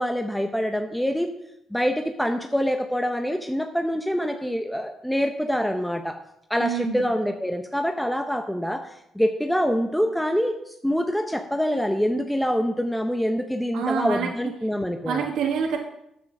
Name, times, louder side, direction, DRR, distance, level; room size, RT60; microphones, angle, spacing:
voice 1, 0.0-1.3 1.7-6.2 6.5-8.8 9.1-15.2, equal, ahead, 5 dB, 0.8 m, -25 dB
voice 2, 6.6-7.1 13.7-14.3 15.0-15.8, right 6 dB, 80° right, 1 dB, 1.4 m, -26 dB
9.2 x 7.8 x 6.1 m, 0.79 s
cardioid pair, 90°, 0 cm